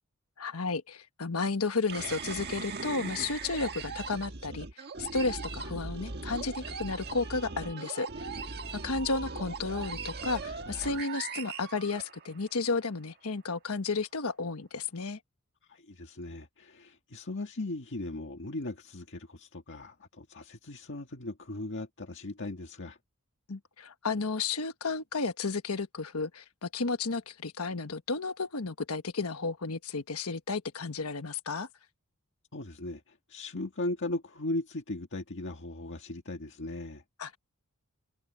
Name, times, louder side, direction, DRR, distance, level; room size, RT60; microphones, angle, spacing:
voice 1, 0.4-4.7 5.0-8.1 8.7-15.2 23.5-31.7 37.2-37.4, left 4 dB, 90° left, 1.3 m, -33 dB
sound 1, 1.9-12.5, right 4 dB, 50° right, 1.5 m, -39 dB
voice 2, 15.7-23.0 32.5-37.0, left 2 dB, 60° left, 1.8 m, -38 dB
head